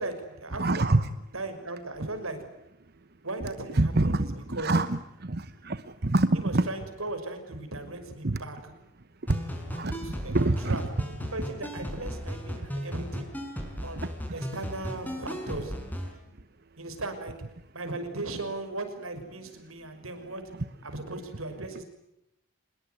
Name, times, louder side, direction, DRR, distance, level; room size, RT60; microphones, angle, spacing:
voice 1, 0.0-0.9 1.3-2.4 3.2-4.2 4.5-4.7 6.3-8.7 10.0-10.8 11.3-13.3 13.8-15.7 16.8-17.3 17.7-20.4 20.8-21.8, right 2 dB, 90° right, 8 dB, 6.1 m, -37 dB
voice 2, 0.6-1.1 3.4-6.7 8.2-8.4 9.3-9.4 9.7-10.8 14.0-14.5 20.5-20.7, right 2 dB, 50° right, 11 dB, 1.1 m, -27 dB
sound 1, 9.3-16.1, equal, 10° left, 5.4 m, -36 dB
26.0 x 21.5 x 9.4 m, 0.85 s
head